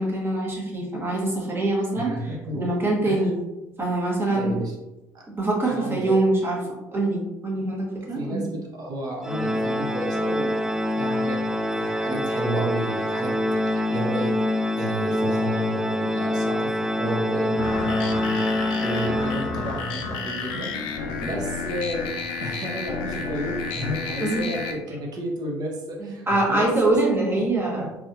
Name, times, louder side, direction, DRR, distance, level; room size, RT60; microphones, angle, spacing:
voice 1, 0.0-3.3 3.8-4.6 5.3-6.6 6.9-8.5 24.2-24.5 26.0-27.9, right 2 dB, 25° right, -3 dB, 1.4 m, -24 dB
voice 2, 1.9-2.7 3.1-3.2 4.3-4.7 5.7-6.1 8.1-10.7 11.0-11.4 11.7-14.4 14.8-20.7 21.2-22.1 22.4-27.0 27.2-27.9, right 1 dB, 45° right, 0 dB, 1.0 m, -32 dB
Organ, 9.2-20.0, left 1 dB, 5° right, 0.3 m, -25 dB
sound 1, 17.6-24.7, left 4 dB, 60° left, 0.5 m, -31 dB
4.0 x 3.0 x 2.5 m, 0.99 s
figure-of-eight pair, 60°, 9 cm